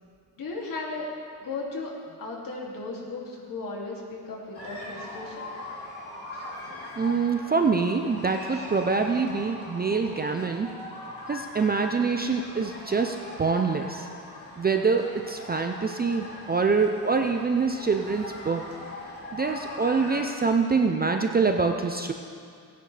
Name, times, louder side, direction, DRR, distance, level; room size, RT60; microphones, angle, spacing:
voice 1, 0.4-1.1 1.4-1.9 2.2-5.5, left 3 dB, 55° left, -3 dB, 2.6 m, -35 dB
sound 1, 4.5-20.2, left 1 dB, 35° left, 3.2 m, -41 dB
voice 2, 7.0-10.7 11.3-14.1 14.6-18.6 19.3-22.1, right 4 dB, 25° right, 4 dB, 0.5 m, -25 dB
18.5 x 10.0 x 3.3 m, 2.3 s
cardioid pair, 130°, 41 cm